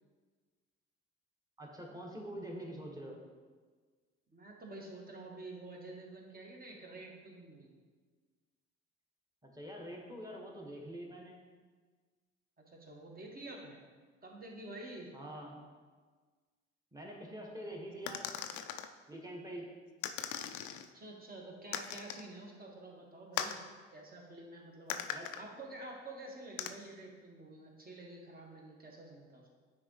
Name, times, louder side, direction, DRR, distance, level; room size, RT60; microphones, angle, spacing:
voice 1, 1.6-3.2 9.4-11.4 15.1-15.6 16.9-18.3 19.1-19.7 25.1-25.3, right 1 dB, 10° right, -1 dB, 1.6 m, -45 dB
voice 2, 4.3-7.7 12.7-13.8 14.2-15.1 20.9-23.6 23.9-25.0 25.4-29.4, right 2 dB, 25° right, -1 dB, 1.6 m, -49 dB
sound 1, 18.1-18.9 20.0-20.9 21.7-22.3 23.4-23.6 24.9-25.4 26.6-26.7, left 10 dB, 60° left, 0.5 m, -39 dB
9.5 x 3.7 x 3.2 m, 1.5 s
figure-of-eight pair, 50°, 34 cm